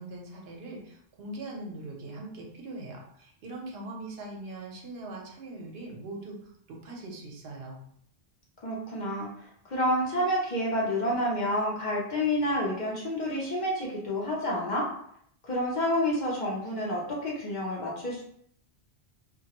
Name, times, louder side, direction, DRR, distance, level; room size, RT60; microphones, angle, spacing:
voice 1, 0.0-7.8, right 2 dB, 70° right, 0 dB, 0.8 m, -41 dB
voice 2, 8.6-9.3 9.7-14.9 15.4-18.2, left 1 dB, 55° left, -4 dB, 0.6 m, -29 dB
2.2 x 2.1 x 2.8 m, 0.66 s
omnidirectional pair, 1.1 m